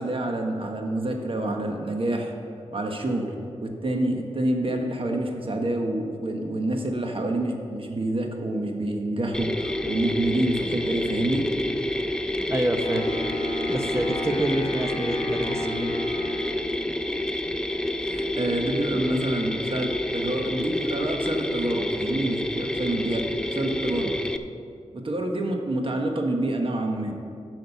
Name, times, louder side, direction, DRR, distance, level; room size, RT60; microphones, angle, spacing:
voice 1, 0.0-2.3 2.7-3.3 3.6-11.4 18.0-24.1 24.9-27.1, right 1 dB, 45° right, 2 dB, 1.2 m, -27 dB
Mechanisms, 9.3-24.4, left 1 dB, 5° left, 0.5 m, -28 dB
voice 2, 12.5-13.1 13.7-15.9, right 1 dB, 20° right, 6 dB, 0.9 m, -27 dB
Wind instrument woodwind instrument, 12.8-17.0, left 2 dB, 45° left, 1.5 m, -35 dB
8.6 x 6.5 x 6.8 m, 2.4 s
cardioid pair, 65°, 12 cm